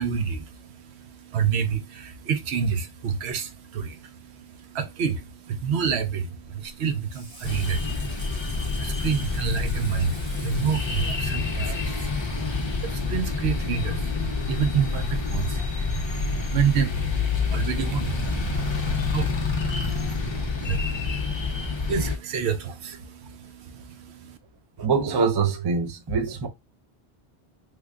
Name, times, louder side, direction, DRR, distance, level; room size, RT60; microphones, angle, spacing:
voice 1, 0.0-24.4, right 7 dB, 75° right, 0.8 m, -29 dB
Water / Sink (filling or washing), 6.4-11.9, right 1 dB, 50° right, 1.5 m, -46 dB
sound 1, 7.4-22.2, left 4 dB, 30° left, 0.6 m, -27 dB
voice 2, 24.8-26.5, right 5 dB, 35° right, 0.4 m, -24 dB
3.3 x 2.1 x 3.6 m
omnidirectional pair, 1.1 m